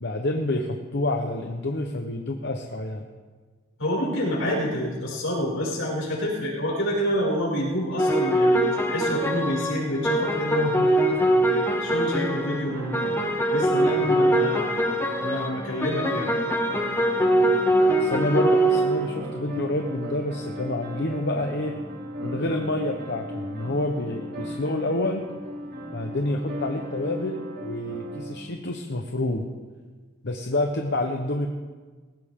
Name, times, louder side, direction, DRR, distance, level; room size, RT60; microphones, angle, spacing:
voice 1, 0.0-3.1 18.0-21.7 22.2-25.2 25.9-29.4 30.2-31.5, left 1 dB, 55° left, 3 dB, 1.0 m, -28 dB
voice 2, 3.8-13.0 13.5-14.8 15.2-16.3, equal, 80° left, -4 dB, 6.1 m, -28 dB
sound 1, 8.0-12.7 12.9-19.1, right 1 dB, 10° left, 1.0 m, -23 dB
Piano Improv, 12.7-28.4, right 1 dB, 45° right, 2.4 m, -37 dB
19.0 x 16.5 x 3.7 m, 1.4 s
head